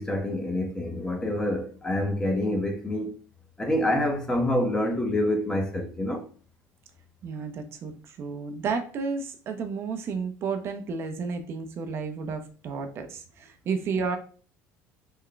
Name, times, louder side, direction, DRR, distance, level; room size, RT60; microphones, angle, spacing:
voice 1, 0.0-3.1 3.6-6.2, left 1 dB, 10° left, 0.6 m, -27 dB
voice 2, 7.2-14.2, right 5 dB, 45° right, 0.5 m, -32 dB
3.4 x 2.1 x 3.7 m
cardioid pair, 130°, 6 cm